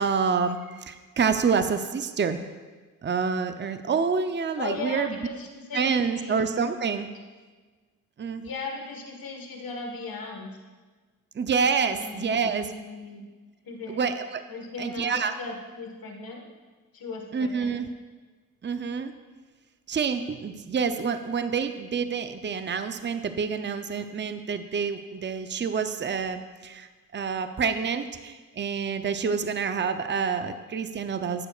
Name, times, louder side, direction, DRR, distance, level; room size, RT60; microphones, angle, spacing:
voice 1, 0.0-2.4 3.0-5.2 5.7-7.1 8.2-8.4 11.3-12.7 13.9-14.4 14.8-15.3 17.3-17.9 18.6-19.1 19.9-31.5, right 5 dB, 30° right, 9 dB, 0.6 m, -27 dB
voice 2, 4.6-6.4 8.4-10.5 11.9-13.2 13.6-14.0 14.5-16.5 16.9-17.8, left 3 dB, 70° left, 1 dB, 1.5 m, -37 dB
12.0 x 8.9 x 2.4 m, 1.4 s
cardioid pair, 65°, 36 cm